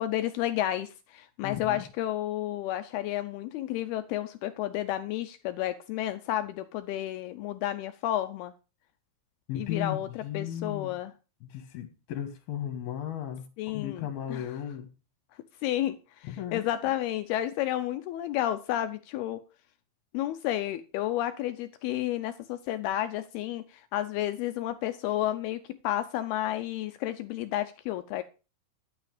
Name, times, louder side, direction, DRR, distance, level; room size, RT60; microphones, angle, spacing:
voice 1, 0.0-8.5 9.5-11.1 13.6-14.5 15.6-19.4 20.1-28.2, left 13 dB, 85° left, 10 dB, 2.2 m, -31 dB
voice 2, 1.4-1.8 9.5-11.0 11.4-14.9 16.3-16.6, left 10 dB, 65° left, 4 dB, 3.2 m, -36 dB
11.5 x 9.4 x 5.0 m, 0.33 s
omnidirectional pair, 5.2 m